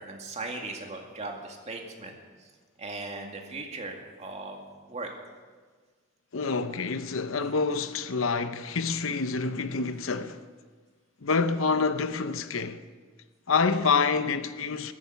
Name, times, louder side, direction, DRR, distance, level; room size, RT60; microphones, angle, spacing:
voice 1, 0.0-2.5 2.8-5.1, right 3 dB, 35° right, 2.2 m, -38 dB
voice 2, 6.3-10.4 11.2-12.8 13.5-14.9, left 4 dB, 70° left, 0.8 m, -27 dB
14.5 x 13.5 x 7.1 m
head